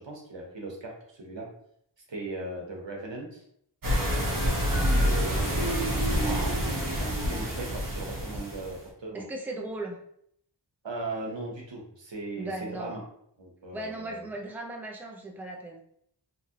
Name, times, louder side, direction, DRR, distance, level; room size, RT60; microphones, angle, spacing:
voice 1, 0.0-1.5 2.1-3.4 5.0-5.5 6.2-9.2 10.8-13.0 13.4-14.2, right 2 dB, 75° right, 0 dB, 0.9 m, -38 dB
sound 1, 3.8-8.8, equal, 50° right, 0.9 m, -27 dB
voice 2, 4.7-5.1 5.5-5.8 6.2-6.5 9.1-10.0 12.4-13.0 13.7-15.8, right 1 dB, 5° right, 1 dB, 0.5 m, -38 dB
2.9 x 2.5 x 2.7 m, 0.69 s
wide cardioid pair, 40°, 44 cm